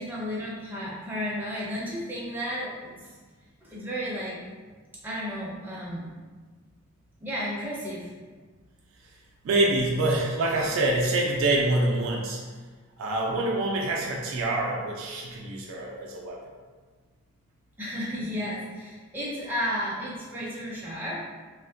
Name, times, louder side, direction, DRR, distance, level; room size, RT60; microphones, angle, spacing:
voice 1, 0.0-2.9 3.6-4.4 5.0-6.1 7.2-8.1 17.8-21.2, equal, 10° right, -6 dB, 0.5 m, -33 dB
voice 2, 9.4-12.4 13.0-16.4, right 2 dB, 75° right, -1 dB, 0.3 m, -26 dB
2.4 x 2.0 x 2.5 m, 1.4 s
head